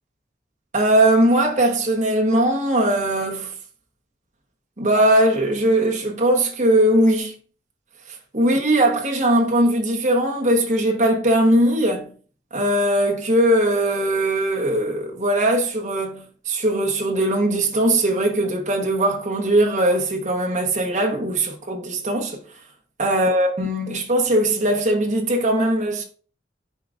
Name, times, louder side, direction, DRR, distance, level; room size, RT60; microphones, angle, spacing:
voice 1, 0.7-3.5 4.8-7.3 8.3-12.1 12.5-22.4 23.0-26.0, right 1 dB, 45° right, 1.4 m, -20 dB
10.0 x 4.8 x 2.6 m
head